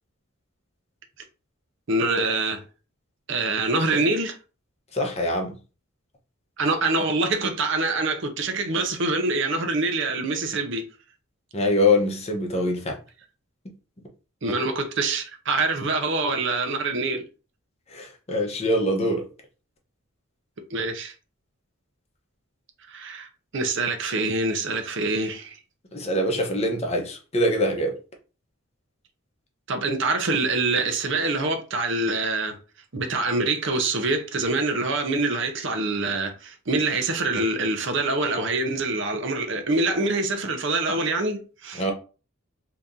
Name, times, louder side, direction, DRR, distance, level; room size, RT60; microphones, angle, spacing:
voice 1, 1.9-2.6 3.3-4.4 6.6-10.8 14.4-17.2 20.7-21.1 22.9-23.3 23.5-25.5 29.7-32.6 32.9-41.9, right 3 dB, 60° right, 0.7 m, -25 dB
voice 2, 4.9-5.5 11.5-13.0 17.9-19.2 25.9-27.9 41.8-41.9, left 1 dB, 30° left, 0.8 m, -24 dB
2.9 x 2.6 x 3.6 m
head